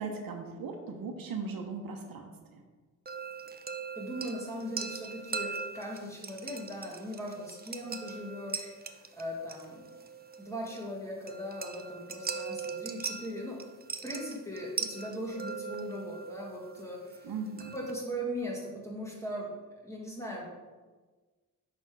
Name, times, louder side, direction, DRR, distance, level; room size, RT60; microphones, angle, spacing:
voice 1, 0.0-2.6 17.2-17.8, right 4 dB, 75° right, 3 dB, 0.8 m, -38 dB
sound 1, 3.1-17.9, right 5 dB, 25° right, 0.5 m, -41 dB
voice 2, 3.9-9.9 10.4-13.6 14.0-17.3 17.7-19.5 19.8-20.5, equal, 10° left, -3 dB, 1.7 m, -39 dB
5.7 x 4.3 x 4.7 m, 1.3 s
cardioid pair, 75°, 35 cm